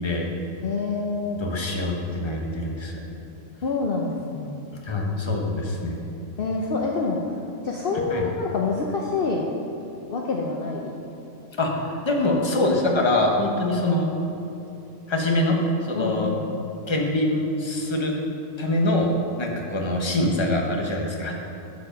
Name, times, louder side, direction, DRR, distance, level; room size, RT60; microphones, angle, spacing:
voice 1, 0.6-1.4 3.6-4.6 6.4-7.2 7.6-9.5 10.1-10.9 16.0-16.5, left 4 dB, 55° left, -1 dB, 0.8 m, -26 dB
voice 2, 1.4-3.0 4.8-6.0 8.1-8.3 11.6-14.1 15.1-16.3 16.9-18.1 18.6-19.1 19.4-21.3, left 1 dB, 25° left, 0 dB, 1.0 m, -24 dB
13.0 x 4.9 x 5.1 m, 2.7 s
omnidirectional pair, 1.3 m